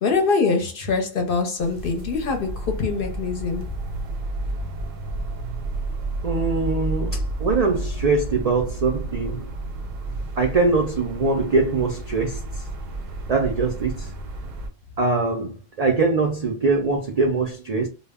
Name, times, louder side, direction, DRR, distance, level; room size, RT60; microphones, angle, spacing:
voice 1, 0.0-3.6, left 4 dB, 55° left, 0.7 m, -23 dB
sound 1, 1.6-14.7, right 2 dB, 90° right, 1.0 m, -31 dB
voice 2, 6.2-9.5 10.4-12.4 13.3-14.1 15.0-17.9, right 3 dB, 70° right, 0.3 m, -22 dB
2.2 x 2.0 x 3.4 m
omnidirectional pair, 1.3 m